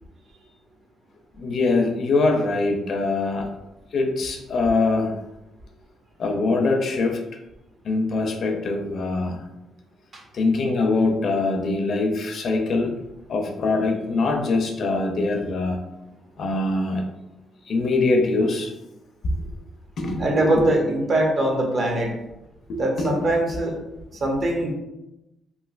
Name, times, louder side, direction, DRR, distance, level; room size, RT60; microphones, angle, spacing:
voice 1, 1.4-3.5 3.9-5.2 6.2-7.2 7.8-9.4 10.3-12.9 13.3-15.8 16.4-17.0 17.7-18.7 19.2-19.5 20.0-20.7 22.7-23.3, left 3 dB, 60° left, 4 dB, 0.5 m, -23 dB
voice 2, 20.2-22.1 22.8-23.8 24.1-24.7, right 1 dB, 45° right, 1 dB, 0.7 m, -22 dB
3.0 x 2.6 x 2.4 m, 0.94 s
cardioid pair, 90°, 0 cm